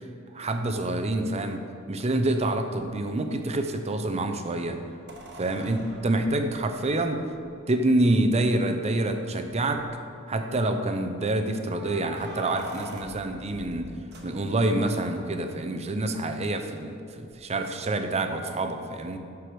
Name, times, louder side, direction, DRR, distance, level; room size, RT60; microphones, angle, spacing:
voice 1, 0.3-1.6 1.9-4.8 5.4-7.2 7.7-9.8 10.3-13.9 14.2-19.2, right 2 dB, 30° right, 6 dB, 0.6 m, -27 dB
sound 1, 5.1-7.5 8.4-8.5 8.8-8.9 9.5-9.9 11.6-14.8 17.3-17.4, right 1 dB, 50° right, 1.1 m, -44 dB
11.0 x 4.8 x 4.7 m, 2.6 s
head